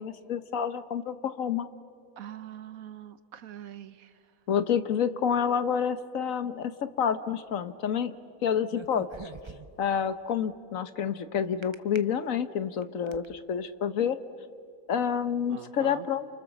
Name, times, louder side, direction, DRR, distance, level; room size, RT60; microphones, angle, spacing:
voice 1, 0.0-1.7 4.5-8.1 8.4-9.3 9.8-14.2 14.9-16.3, left 8 dB, 70° left, 11 dB, 1.4 m, -28 dB
voice 2, 2.2-4.1 15.5-16.1, right 9 dB, 80° right, 13 dB, 1.4 m, -43 dB
sound 1, 8.7-9.9 11.6-12.0 12.6-13.3, right 4 dB, 25° right, 0.6 m, -43 dB
29.5 x 28.5 x 7.1 m, 2.3 s
omnidirectional pair, 1.5 m